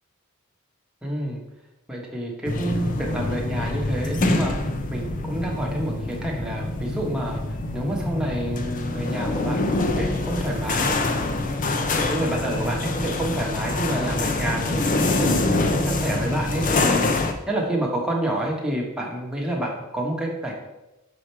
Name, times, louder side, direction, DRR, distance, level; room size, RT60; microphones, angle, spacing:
voice 1, 1.0-1.4 1.9-4.5 4.9-7.4 7.7-11.5 11.9-17.1 17.5-20.5, right 1 dB, 5° right, -2 dB, 1.2 m, -28 dB
Automatic doors and carts at a supermarket., 2.4-17.3, left 2 dB, 40° left, 0.5 m, -25 dB
6.3 x 5.0 x 4.5 m, 0.98 s
head